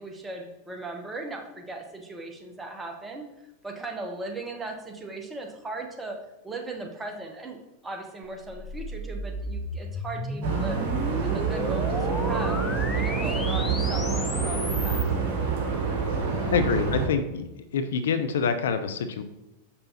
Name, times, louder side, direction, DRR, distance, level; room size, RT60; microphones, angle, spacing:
voice 1, 0.0-3.3 3.6-6.2 6.4-7.6 7.8-10.8 11.2-12.6 12.9-15.0, right 2 dB, 10° right, 2 dB, 0.9 m, -37 dB
sound 1, 8.2-15.1, left 2 dB, 15° left, 0.6 m, -34 dB
sound 2, 10.4-17.1, right 5 dB, 45° right, 1.5 m, -27 dB
voice 2, 16.5-19.2, left 5 dB, 60° left, 10 dB, 0.4 m, -26 dB
6.6 x 5.5 x 2.8 m, 0.96 s
figure-of-eight pair, 90°, 0 cm